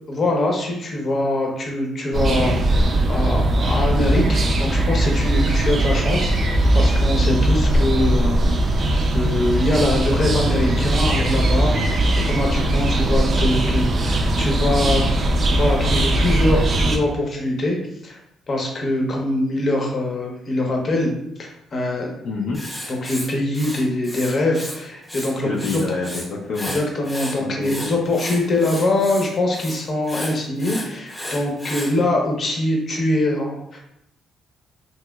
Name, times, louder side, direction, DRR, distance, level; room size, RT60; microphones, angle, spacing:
voice 1, 0.1-8.5 8.8-15.0 15.5-17.8 18.0-18.2 18.5-21.1 21.4-22.1 22.9-25.6 26.7-33.8, left 1 dB, 45° left, 0 dB, 0.7 m, -23 dB
sound 1, 2.1-17.0, right 1 dB, 45° right, 0.4 m, -19 dB
voice 2, 22.2-22.6 25.4-26.7 27.4-27.7, left 4 dB, 75° left, -3 dB, 0.4 m, -27 dB
Writing, 22.5-24.8 25.0-26.2 26.5-31.9, equal, 10° left, 0.7 m, -33 dB
2.9 x 2.8 x 2.2 m, 0.78 s
cardioid pair, 90°, 0 cm